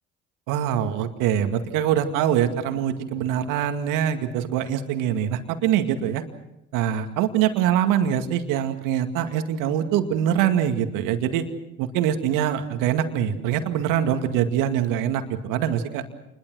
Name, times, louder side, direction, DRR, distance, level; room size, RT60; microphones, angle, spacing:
voice 1, 0.5-6.2 6.7-11.4 11.8-16.0, right 10 dB, 70° right, 7 dB, 2.2 m, -24 dB
28.0 x 21.5 x 6.3 m, 0.88 s
hypercardioid pair, 60°, 33 cm